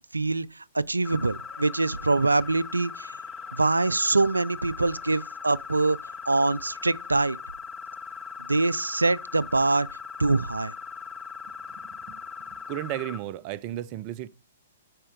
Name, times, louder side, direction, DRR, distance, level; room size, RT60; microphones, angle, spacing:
voice 1, 0.1-3.2 3.5-6.0 6.3-7.4 8.5-9.9 10.2-10.7, right 3 dB, 90° right, 0.3 m, -24 dB
sound 1, 1.0-13.2, left 6 dB, 20° left, 1.0 m, -40 dB
sound 2, 1.2-7.2, left 4 dB, 45° left, 3.0 m, -60 dB
voice 2, 12.7-14.3, right 13 dB, 40° right, 0.5 m, -33 dB
8.8 x 4.3 x 5.1 m
figure-of-eight pair, 115°, 0 cm